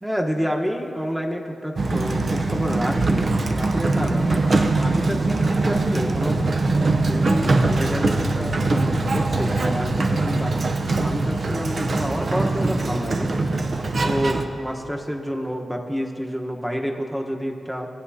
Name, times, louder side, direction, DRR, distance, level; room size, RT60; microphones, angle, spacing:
voice 1, 0.0-4.4 4.8-6.4 7.0-13.3 14.0-17.9, equal, 5° right, 1 dB, 1.1 m, -29 dB
Sliding door, 1.8-14.4, right 2 dB, 60° right, 0.6 m, -22 dB
16.0 x 9.5 x 2.8 m, 2.6 s
cardioid pair, 55°, 0 cm